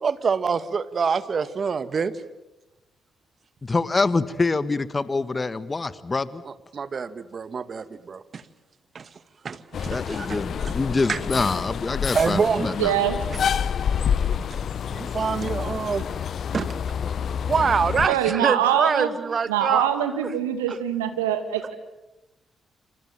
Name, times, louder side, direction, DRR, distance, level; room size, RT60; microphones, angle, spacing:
voice 1, 0.0-2.1 6.5-8.4 9.0-9.1 9.4-10.8 11.1-11.2 12.1-12.8 13.3-13.4 14.9-16.1 16.5-16.7 17.0-17.1 17.4-19.8 20.7-20.8, right 5 dB, 50° right, 14 dB, 1.8 m, -26 dB
voice 2, 3.6-6.4 9.9-12.9, left 3 dB, 30° left, 15 dB, 1.6 m, -25 dB
sound 1, 9.7-18.1, left 8 dB, 60° left, 1.1 m, -28 dB
voice 3, 12.8-13.2 18.1-19.1 19.5-21.8, right 10 dB, 85° right, 8 dB, 2.4 m, -23 dB
28.5 x 26.5 x 7.5 m, 0.99 s
hypercardioid pair, 40°, 0 cm